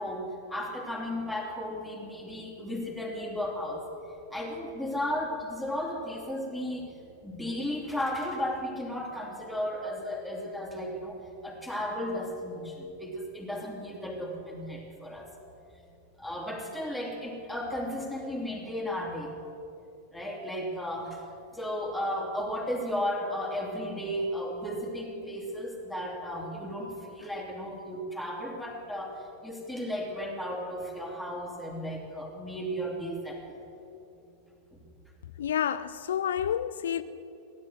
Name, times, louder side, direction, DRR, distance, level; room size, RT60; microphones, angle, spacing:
voice 1, 0.0-3.8 4.3-6.9 7.2-15.3 16.2-19.3 20.1-21.2 21.5-33.5 34.7-34.8, equal, ahead, 3.0 m, -34 dB
voice 2, 35.4-37.0, left 9 dB, 60° left, 0.4 m, -29 dB
16.5 x 10.5 x 7.6 m
figure-of-eight pair, 90°, 0 cm